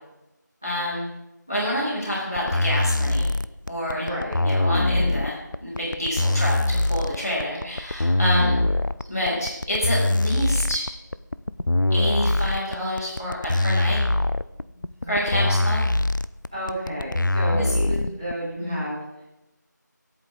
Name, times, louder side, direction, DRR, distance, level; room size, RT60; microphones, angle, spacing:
voice 1, 0.6-1.1 1.5-3.3 3.7-4.1 4.4-8.6 9.1-10.9 11.9-14.0 15.1-15.8 17.5-17.6 18.6-18.8, equal, 10° left, -16 dB, 1.7 m, -27 dB
sound 1, 2.4-18.3, left 2 dB, 85° left, 0.6 m, -23 dB
voice 2, 3.9-4.4 8.3-8.7 15.0-15.6 16.5-19.2, equal, 15° right, -11 dB, 3.9 m, -32 dB
21.0 x 8.4 x 3.8 m, 0.97 s
figure-of-eight pair, 180°, 10 cm